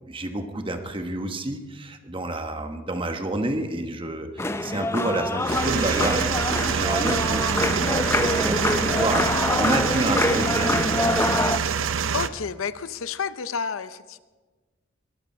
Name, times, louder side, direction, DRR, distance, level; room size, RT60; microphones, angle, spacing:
voice 1, 0.1-11.4, right 2 dB, 25° right, 6 dB, 1.1 m, -29 dB
sound 1, 4.4-11.6, left 2 dB, 10° left, 0.5 m, -25 dB
sound 2, 5.4-12.3, right 7 dB, 75° right, 0.6 m, -26 dB
voice 2, 12.1-14.2, left 6 dB, 75° left, 14 dB, 0.6 m, -30 dB
22.0 x 13.0 x 4.3 m, 1.3 s
head